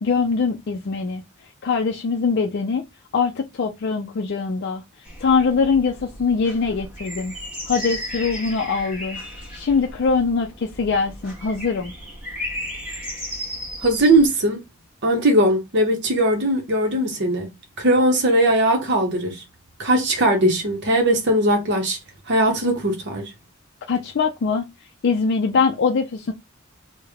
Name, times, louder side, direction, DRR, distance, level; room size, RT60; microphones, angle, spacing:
voice 1, 0.0-1.2 1.6-2.8 3.1-4.8 5.2-7.3 7.7-9.2 9.5-11.9 23.9-24.7 25.0-26.3, left 5 dB, 50° left, 0.4 m, -22 dB
sound 1, 5.0-14.3, left 1 dB, 5° right, 1.2 m, -35 dB
voice 2, 13.8-14.6 15.0-17.5 17.8-19.4 19.8-22.0 22.3-23.3, right 1 dB, 55° right, 0.8 m, -19 dB
3.3 x 2.1 x 3.4 m
head